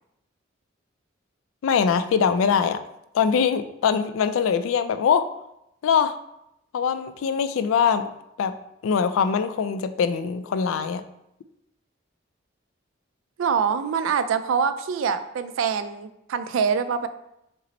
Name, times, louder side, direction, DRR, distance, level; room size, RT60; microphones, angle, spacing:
voice 1, 1.6-2.8 3.1-5.2 5.8-6.1 6.7-8.1 8.4-8.6 8.8-11.0, left 6 dB, 85° left, 11 dB, 0.3 m, -22 dB
voice 2, 13.4-17.1, right 6 dB, 85° right, 11 dB, 0.3 m, -24 dB
5.0 x 2.0 x 4.2 m, 0.82 s
head